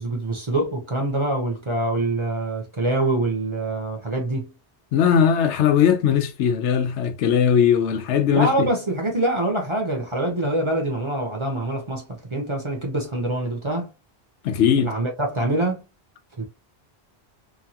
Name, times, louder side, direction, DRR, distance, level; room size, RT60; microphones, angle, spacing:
voice 1, 0.0-4.5 8.3-13.9 14.8-15.8 16.4-16.5, right 2 dB, 30° right, 0.6 m, -25 dB
voice 2, 4.9-8.7 14.4-14.9, left 8 dB, 85° left, 0.9 m, -19 dB
3.0 x 2.3 x 2.7 m
omnidirectional pair, 1.1 m